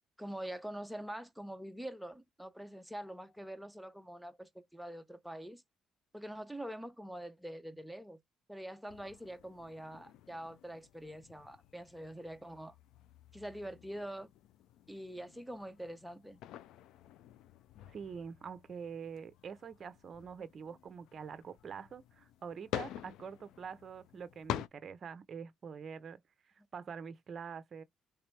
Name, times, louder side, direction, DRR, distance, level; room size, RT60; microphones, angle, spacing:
voice 1, 0.2-5.6 6.1-8.2 8.5-12.7 13.3-14.3 14.9-16.4, right 1 dB, ahead, 0.7 m, -45 dB
sound 1, 8.9-24.7, left 12 dB, 75° left, 0.3 m, -48 dB
voice 2, 17.9-26.2 26.7-27.8, right 6 dB, 50° right, 0.6 m, -45 dB
3.4 x 2.9 x 3.3 m
supercardioid pair, 65°, 0 cm